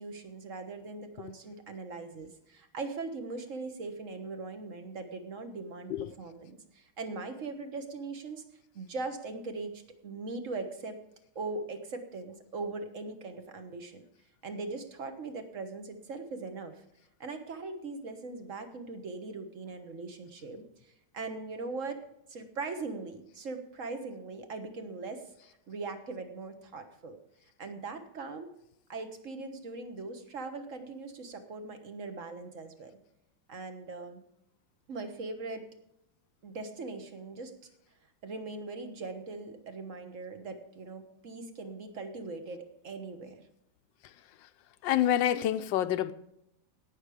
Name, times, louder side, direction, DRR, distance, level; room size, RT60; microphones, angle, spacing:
voice 1, 0.0-8.4 8.7-11.0 11.3-14.0 14.4-16.8 17.2-22.0 22.3-27.2 27.6-28.5 28.9-32.9 33.5-34.2 34.9-35.7 36.4-37.5 38.2-43.4, right 3 dB, 45° right, 7 dB, 1.5 m, -40 dB
voice 2, 44.8-46.1, left 11 dB, 75° left, 12 dB, 1.3 m, -27 dB
17.0 x 6.7 x 4.9 m, 0.80 s
omnidirectional pair, 2.1 m